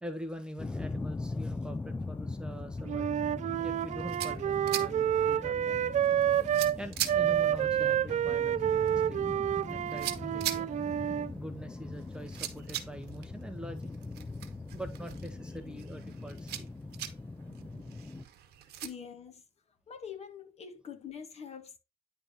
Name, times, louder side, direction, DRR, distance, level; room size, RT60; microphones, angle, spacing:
voice 1, 0.0-3.3 3.6-5.8 6.8-10.7 11.3-13.9 14.7-16.7, right 1 dB, 5° right, 0.9 m, -44 dB
Slow-Jet-Flover, 0.6-18.2, left 3 dB, 10° left, 0.4 m, -41 dB
Wind instrument woodwind instrument, 2.8-6.8 7.1-11.3, right 10 dB, 45° right, 0.5 m, -29 dB
sound 1, 3.8-18.9, right 11 dB, 75° right, 1.3 m, -43 dB
voice 2, 18.8-19.4 19.9-21.8, left 7 dB, 40° left, 1.4 m, -44 dB
9.8 x 3.5 x 4.1 m
cardioid pair, 110°, 17 cm